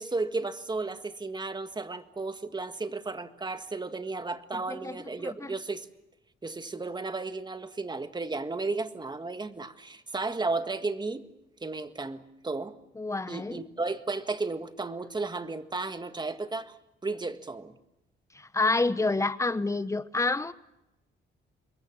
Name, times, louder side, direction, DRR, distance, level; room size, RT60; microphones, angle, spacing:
voice 1, 0.0-5.9 6.4-11.2 11.6-12.8 13.3-16.7 17.0-17.7, right 3 dB, 20° right, 1.6 m, -34 dB
voice 2, 4.5-5.5 13.0-13.6 18.3-20.5, left 3 dB, 15° left, 1.1 m, -29 dB
27.5 x 22.0 x 7.4 m
cardioid pair, 90°, 20 cm